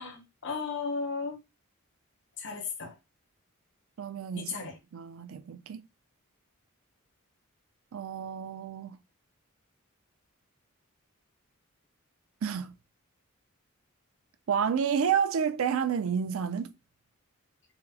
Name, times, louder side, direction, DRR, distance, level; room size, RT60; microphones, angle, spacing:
voice 1, 0.0-1.4 2.4-2.9 4.3-4.8, left 4 dB, 55° left, 0.8 m, -35 dB
voice 2, 4.0-5.8 7.9-9.0 12.4-12.7 14.5-16.7, right 7 dB, 70° right, 0.4 m, -30 dB
4.0 x 2.0 x 2.7 m
head